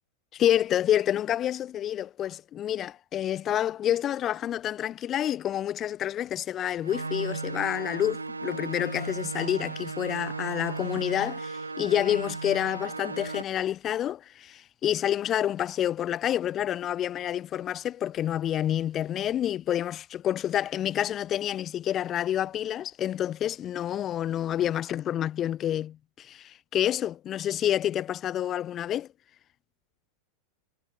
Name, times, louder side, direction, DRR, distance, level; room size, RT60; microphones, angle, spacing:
voice 1, 0.3-29.1, left 11 dB, 30° left, 0.6 m, -28 dB
sound 1, 6.8-13.4, right 3 dB, 80° right, 0.6 m, -35 dB
figure-of-eight pair, 90°, 0 cm